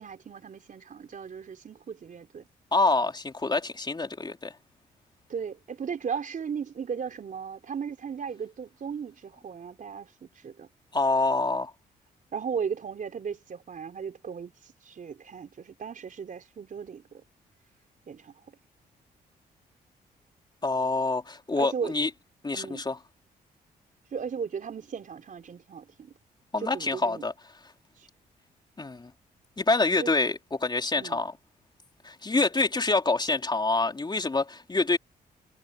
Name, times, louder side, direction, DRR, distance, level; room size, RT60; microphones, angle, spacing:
voice 1, 0.0-2.5 5.3-10.7 12.3-14.5 14.8-17.2 18.1-18.3 21.6-21.9 22.5-22.9 24.1-26.1 26.6-27.2 28.0-28.1 30.0-30.1 30.9-31.2, right 6 dB, 55° right, 4.4 m, -36 dB
voice 2, 2.7-4.5 10.9-11.7 20.6-22.1 22.4-23.0 26.5-27.3 28.8-29.1 29.6-31.3 32.0-35.0, left 3 dB, 25° left, 3.6 m, -26 dB
cardioid pair, 70°, 17 cm